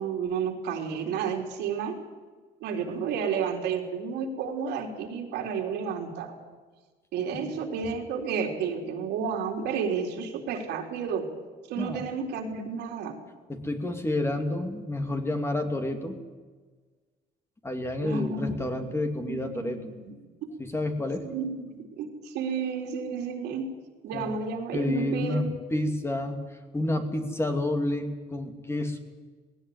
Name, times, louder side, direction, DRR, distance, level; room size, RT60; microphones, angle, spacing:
voice 1, 0.0-2.0 2.6-6.3 7.1-11.3 11.7-13.2 18.0-18.6 19.2-20.1 21.2-23.7 24.0-25.5, right 6 dB, 85° right, 2 dB, 3.7 m, -31 dB
voice 2, 11.8-12.1 13.5-16.2 17.6-19.9 20.6-21.3 24.1-24.3 24.7-26.4 26.7-29.0, left 1 dB, 15° left, 5 dB, 2.7 m, -29 dB
19.0 x 17.0 x 9.5 m, 1.4 s
cardioid pair, 110°, 17 cm